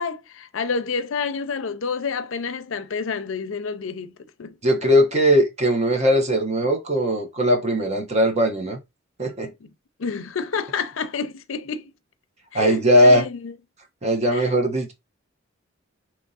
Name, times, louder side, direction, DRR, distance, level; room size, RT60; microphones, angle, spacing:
voice 1, 0.0-4.1 4.4-4.6 9.6-9.7 10.0-11.9 12.5-13.5 14.3-14.5, left 5 dB, 75° left, 0.6 m, -29 dB
voice 2, 4.6-8.8 9.2-9.5 12.5-13.3 14.0-14.9, equal, 35° right, 1.1 m, -19 dB
3.5 x 3.1 x 4.0 m
head